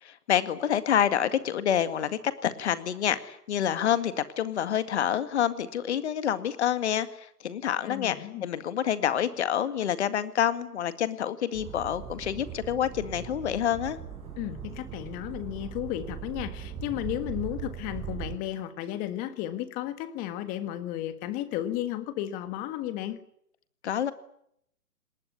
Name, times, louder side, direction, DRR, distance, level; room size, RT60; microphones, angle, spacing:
voice 1, 0.0-14.0 23.8-24.1, left 9 dB, 45° left, 12 dB, 2.0 m, -27 dB
voice 2, 7.8-8.4 14.4-23.2, left 13 dB, 20° left, 12 dB, 1.5 m, -34 dB
sound 1, 11.5-18.3, right 8 dB, 15° right, 5.9 m, -39 dB
22.0 x 19.5 x 9.8 m, 0.72 s
hypercardioid pair, 140°, 45 cm